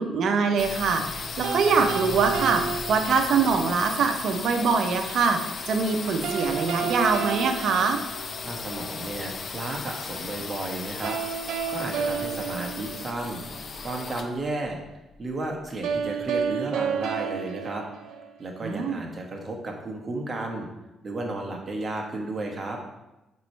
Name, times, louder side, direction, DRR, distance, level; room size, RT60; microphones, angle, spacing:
voice 1, 0.0-2.6 2.9-8.0 18.6-19.0, right 5 dB, 65° right, 5 dB, 0.8 m, -24 dB
sound 1, 0.6-16.2, left 4 dB, 45° left, 0.6 m, -36 dB
sound 2, 1.4-3.6 6.2-8.7 11.0-13.6 15.8-18.7, right 7 dB, 80° right, 0.4 m, -31 dB
voice 2, 8.4-11.2 11.7-13.4 13.8-14.8 15.2-17.8 18.4-20.7 21.0-22.8, right 2 dB, 35° right, 1 dB, 1.4 m, -33 dB
7.5 x 3.1 x 4.5 m, 0.98 s
cardioid pair, 90°, 0 cm